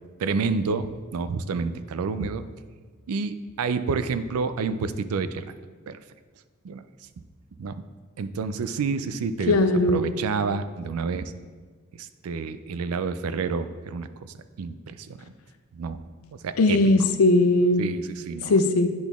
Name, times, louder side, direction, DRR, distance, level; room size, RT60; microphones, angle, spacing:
voice 1, 0.2-2.4 3.1-5.4 5.9-6.0 6.6-6.8 7.6-7.8 8.2-9.6 9.9-11.3 12.0-14.3 14.6-15.3 15.7-16.0 16.4-16.8 17.8-18.6, right 4 dB, 90° right, 12 dB, 0.4 m, -29 dB
voice 2, 9.5-10.0 16.6-17.8 18.5-18.9, left 2 dB, 85° left, 9 dB, 0.5 m, -19 dB
10.0 x 4.0 x 3.5 m, 1.5 s
head